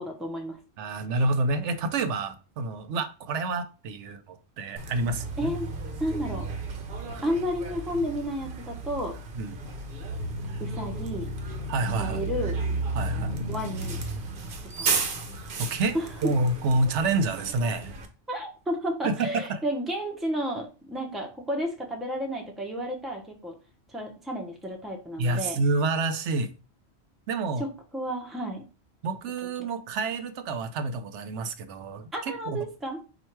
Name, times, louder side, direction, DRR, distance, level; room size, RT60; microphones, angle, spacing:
voice 1, 0.0-0.6 5.4-5.7 6.0-6.5 7.2-9.2 10.6-11.3 11.9-12.6 13.5-14.0 14.8-15.0 15.9-16.3 18.3-23.5 23.9-25.6 27.6-27.7 27.9-28.6 32.1-33.0, equal, ahead, 0.7 m, -32 dB
voice 2, 0.8-5.5 9.3-9.6 11.7-12.2 12.9-13.3 15.3-18.0 19.0-19.6 25.2-26.5 27.3-27.6 29.0-32.6, right 2 dB, 90° right, 0.9 m, -28 dB
Bus, 4.8-18.1, right 3 dB, 55° right, 0.8 m, -33 dB
4.4 x 2.5 x 4.5 m
omnidirectional pair, 1.2 m